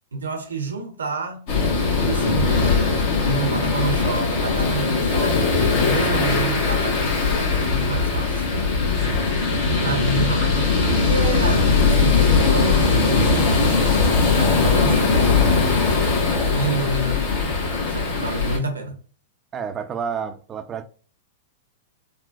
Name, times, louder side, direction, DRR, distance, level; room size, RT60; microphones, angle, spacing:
voice 1, 0.1-1.5 2.0-5.4 5.8-8.5 9.8-16.1 16.5-17.6 17.9-19.0, right 3 dB, 85° right, 0.8 m, -29 dB
sound 1, 1.5-18.6, left 4 dB, 55° left, 1.3 m, -20 dB
voice 2, 9.0-9.4 9.9-10.2 19.5-20.8, right 7 dB, 25° right, 0.5 m, -31 dB
3.8 x 2.4 x 2.3 m
hypercardioid pair, 105°, 0 cm